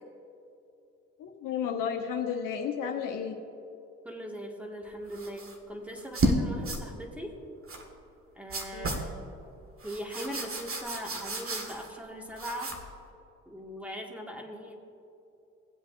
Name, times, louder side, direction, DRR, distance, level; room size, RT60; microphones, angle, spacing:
voice 1, 1.2-3.4 8.7-9.0, left 7 dB, 70° left, 3 dB, 1.0 m, -32 dB
voice 2, 4.0-7.3 8.4-9.3 9.8-12.7 13.5-14.7, equal, 5° right, 0 dB, 2.0 m, -40 dB
sound 1, 5.1-5.6 6.0-6.4 6.6-6.8 7.7-7.8 8.5-9.1 9.8-12.0 12.3-12.9, right 2 dB, 40° right, 1.8 m, -32 dB
19.0 x 8.0 x 2.7 m, 2.8 s
hypercardioid pair, 50°, 33 cm